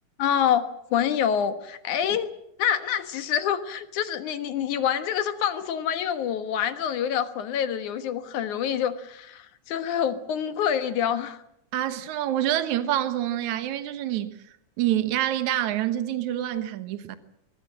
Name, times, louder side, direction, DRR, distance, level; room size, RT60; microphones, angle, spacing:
voice 1, 0.2-2.3 2.6-11.4, left 9 dB, 85° left, 2.9 m, -26 dB
voice 2, 11.7-14.4 14.8-17.2, right 12 dB, 75° right, 2.6 m, -26 dB
23.0 x 19.0 x 7.6 m
omnidirectional pair, 3.4 m